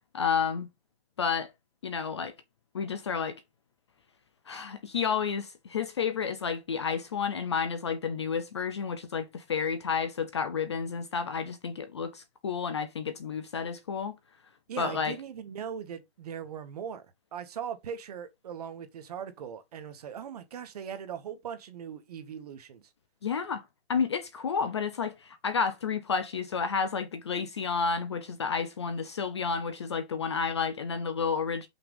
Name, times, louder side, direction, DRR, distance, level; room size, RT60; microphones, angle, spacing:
voice 1, 0.1-0.7 1.2-1.5 1.8-2.3 2.7-3.4 4.5-14.2 14.8-15.2 23.2-23.6 23.9-31.7, left 6 dB, 25° left, 0.6 m, -31 dB
voice 2, 14.7-17.1 17.3-22.8, right 8 dB, 35° right, 1.4 m, -39 dB
5.9 x 5.8 x 5.4 m
hypercardioid pair, 175°, 33 cm